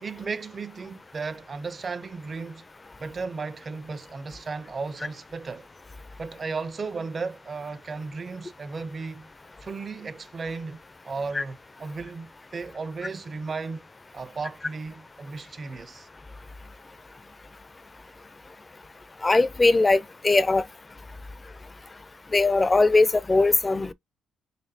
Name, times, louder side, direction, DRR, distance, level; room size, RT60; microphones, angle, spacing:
voice 1, 0.0-2.6 3.0-5.7 6.2-9.3 9.6-13.9 14.1-16.1, right 4 dB, 40° right, 0.5 m, -35 dB
voice 2, 19.2-20.6 22.3-23.9, left 3 dB, 20° left, 0.4 m, -20 dB
4.2 x 3.3 x 2.7 m
cardioid pair, 90°, 0 cm